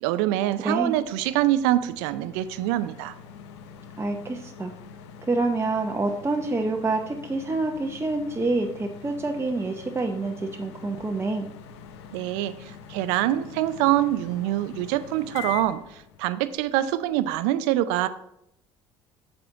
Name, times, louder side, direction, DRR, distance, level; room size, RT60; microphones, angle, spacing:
voice 1, 0.0-3.1 12.1-18.1, right 14 dB, 70° right, 13 dB, 0.5 m, -25 dB
voice 2, 0.6-1.0 4.0-4.7 5.2-11.5, right 2 dB, 20° right, 3 dB, 0.8 m, -27 dB
sound 1, 0.9-17.4, left 7 dB, 75° left, 0.7 m, -44 dB
7.6 x 7.4 x 3.8 m, 0.76 s
hypercardioid pair, 55°, 15 cm